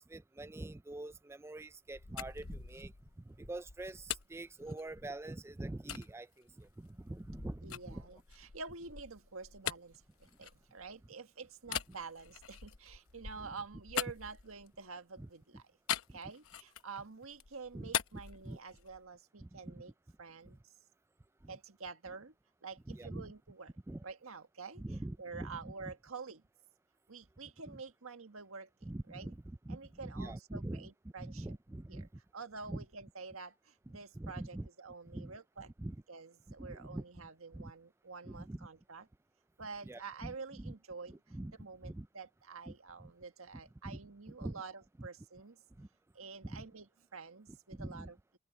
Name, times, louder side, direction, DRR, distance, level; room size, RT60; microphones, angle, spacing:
voice 1, 0.0-8.2 11.7-11.8 13.4-13.6 15.2-15.3 16.1-16.2 17.7-17.9 18.4-18.6 19.4-19.7 20.4-20.6 21.4-21.6 22.9-23.3 23.9-24.0 24.8-25.9 27.7-27.8 28.8-30.9 31.2-32.2 32.7-32.8 33.9-34.7 35.1-35.4 35.6-36.0 36.6-37.7 38.2-38.7 39.8-40.7 41.1-41.5 41.8-42.1 42.7-42.8 43.0-43.1 43.8-44.0 44.3-44.6 45.0-45.1 45.8-45.9 46.4-46.7 47.5-48.1, right 1 dB, 10° right, 0.4 m, -45 dB
sound 1, 1.7-5.3 5.9-6.1 6.6-11.1 11.6-14.9 15.9-17.0 17.3-19.1, left 9 dB, 85° left, 0.9 m, -42 dB
voice 2, 7.6-10.0 10.4-15.6 16.1-19.9 20.2-20.7 21.5-22.3 22.6-23.7 24.0-24.8 25.2-26.4 27.1-29.3 29.7-31.5 31.9-32.0 32.3-35.7 36.1-39.0 39.6-41.3 41.6-45.6 46.1-46.8 47.1-48.1, right 4 dB, 85° right, 1.6 m, -48 dB
open air
head